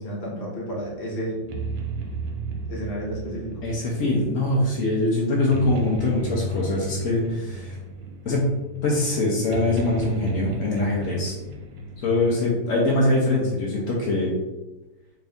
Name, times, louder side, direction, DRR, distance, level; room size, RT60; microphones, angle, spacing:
voice 1, 0.0-1.5 2.7-3.7, right 1 dB, 45° left, -3 dB, 0.7 m, -31 dB
sound 1, 0.7-12.5, right 1 dB, 85° right, 1.4 m, -34 dB
voice 2, 3.6-7.8 8.3-8.5 8.8-11.3 12.0-14.3, left 2 dB, 85° left, -3 dB, 0.7 m, -23 dB
3.5 x 2.6 x 3.4 m, 1.0 s
omnidirectional pair, 2.2 m